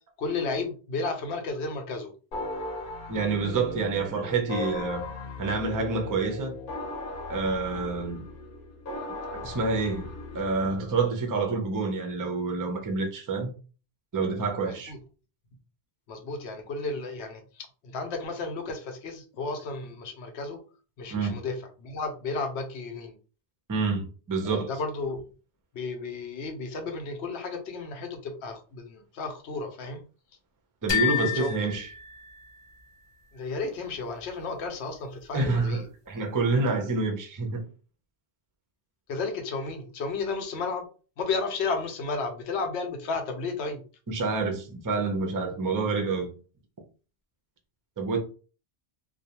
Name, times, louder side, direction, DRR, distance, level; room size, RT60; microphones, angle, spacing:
voice 1, 0.2-2.1 14.7-15.0 16.1-20.6 21.0-23.1 24.4-25.2 25.7-30.0 31.3-31.5 33.3-35.9 39.1-40.9 41.2-43.8, left 3 dB, 85° left, 0.9 m, -33 dB
sound 1, 2.3-11.0, left 2 dB, 60° left, 0.8 m, -37 dB
voice 2, 3.1-5.0 5.4-6.5 7.3-8.3 9.3-10.1 10.3-13.5 14.1-14.9 21.1-21.4 23.7-24.7 30.8-31.9 35.3-37.6 44.1-46.3 48.0-48.2, right 4 dB, 30° right, 0.3 m, -28 dB
sound 2, 30.9-32.8, left 9 dB, 35° left, 0.5 m, -30 dB
2.3 x 2.2 x 2.8 m
omnidirectional pair, 1.1 m